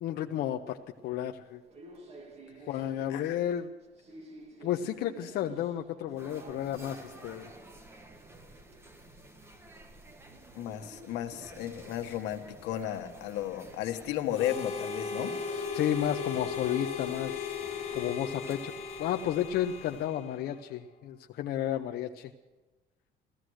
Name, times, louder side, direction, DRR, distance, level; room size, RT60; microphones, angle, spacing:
voice 1, 0.0-0.8 1.0-1.6 2.7-3.7 4.6-7.5 15.7-17.4 17.9-18.7 19.0-22.3, left 11 dB, 60° left, 4 dB, 0.7 m, -32 dB
sound 1, 0.7-12.5, right 2 dB, 35° right, 1.7 m, -53 dB
sound 2, 6.2-20.1, right 1 dB, 15° right, 1.2 m, -52 dB
voice 2, 10.5-15.3, left 11 dB, 90° left, 6 dB, 1.4 m, -34 dB
Harmonica, 14.3-20.7, left 6 dB, 35° left, 2.0 m, -37 dB
16.0 x 14.0 x 6.3 m, 1.1 s
cardioid pair, 155°, 17 cm